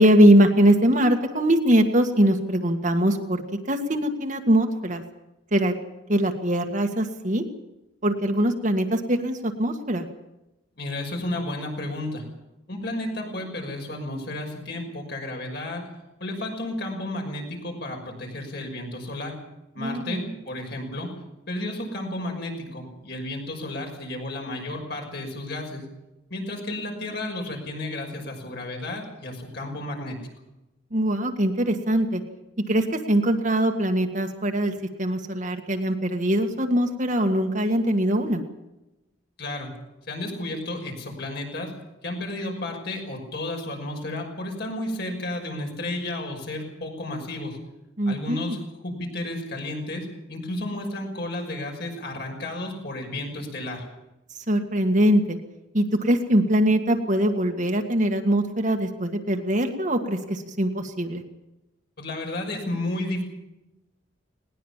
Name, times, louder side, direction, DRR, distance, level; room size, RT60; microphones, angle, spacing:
voice 1, 0.0-3.4 3.7-5.0 5.5-5.7 6.1-7.4 8.0-10.1 19.8-20.3 30.9-32.2 32.7-38.4 48.0-48.6 54.5-55.4 55.7-61.2, equal, 40° right, 4 dB, 1.9 m, -22 dB
voice 2, 10.8-12.2 12.7-15.8 16.2-19.4 19.7-21.1 21.5-25.8 26.3-30.2 39.4-39.7 40.1-41.7 42.0-47.6 48.1-53.9 62.0-63.2, left 1 dB, 55° left, 2 dB, 6.0 m, -32 dB
20.0 x 19.0 x 7.4 m, 0.97 s
head